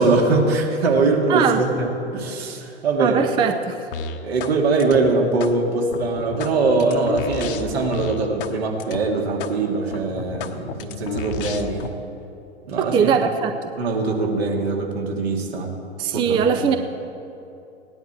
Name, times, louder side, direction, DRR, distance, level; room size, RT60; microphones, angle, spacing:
voice 1, 0.0-3.2 4.2-11.9 12.7-13.1 13.8-15.7 16.1-16.7, right 3 dB, 65° right, 0 dB, 2.5 m, -22 dB
voice 2, 1.3-1.6 3.0-3.8 12.8-13.5 16.0-16.8, right 7 dB, 15° right, 7 dB, 0.4 m, -20 dB
sound 1, 3.9-4.5 4.8-5.5 5.9-8.5 8.8-9.0 9.4-9.5 9.9-11.9, left 6 dB, 50° left, 1.1 m, -31 dB
17.5 x 10.5 x 4.6 m, 2.8 s
figure-of-eight pair, 100°, 34 cm